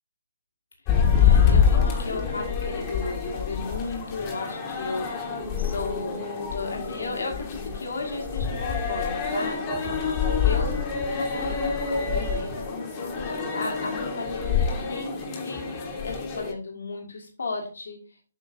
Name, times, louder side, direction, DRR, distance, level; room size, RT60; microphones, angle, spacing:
voice 1, 0.9-6.3 6.5-9.9 10.4-10.8 11.1-18.0, left 3 dB, 65° left, 0 dB, 1.8 m, -35 dB
sound 1, 0.9-16.5, left 6 dB, 25° left, 1.4 m, -26 dB
8.2 x 5.4 x 2.6 m, 0.38 s
figure-of-eight pair, 135°, 0 cm